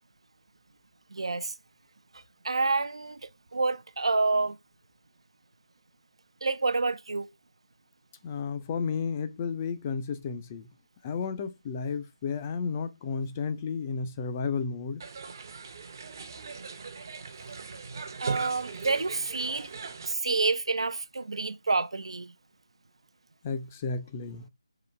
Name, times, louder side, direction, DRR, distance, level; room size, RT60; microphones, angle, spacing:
voice 1, 1.1-1.5 2.1-4.6 6.4-7.3 18.2-19.7 20.1-22.3, right 3 dB, 70° right, 0.5 m, -28 dB
voice 2, 8.2-10.7 11.0-15.0 23.4-24.5, left 5 dB, 20° left, 0.4 m, -32 dB
sound 1, 15.0-20.1, right 5 dB, 40° right, 0.7 m, -39 dB
3.9 x 2.9 x 4.4 m
figure-of-eight pair, 165°, 3 cm